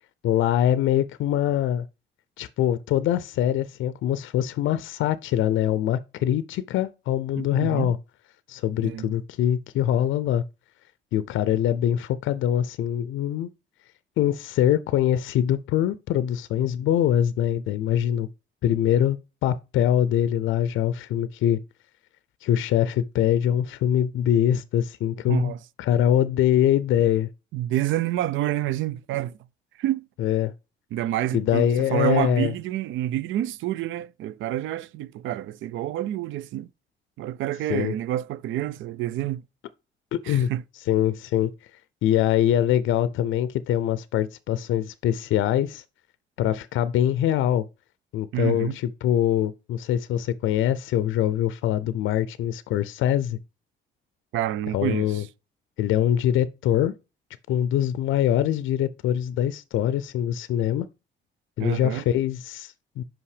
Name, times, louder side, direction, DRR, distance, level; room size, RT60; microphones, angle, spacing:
voice 1, 0.2-1.8 2.4-8.0 8.5-10.4 11.1-13.5 14.2-18.3 18.6-19.2 19.4-21.6 22.4-27.3 30.2-30.5 31.3-32.5 37.7-37.9 40.1-40.5 40.9-41.5 42.0-45.8 46.4-47.6 48.1-53.4 54.7-55.2 55.8-56.9 57.5-60.9 61.6-63.0, left 11 dB, 80° left, 0.5 m, -23 dB
voice 2, 7.4-7.9 8.8-9.1 25.3-25.6 27.5-29.3 29.8-30.1 30.9-36.7 37.2-39.4 40.2-40.6 48.3-48.8 54.3-55.3 61.6-62.0, right 13 dB, 75° right, 0.4 m, -28 dB
5.7 x 5.2 x 4.8 m
cardioid pair, 90°, 20 cm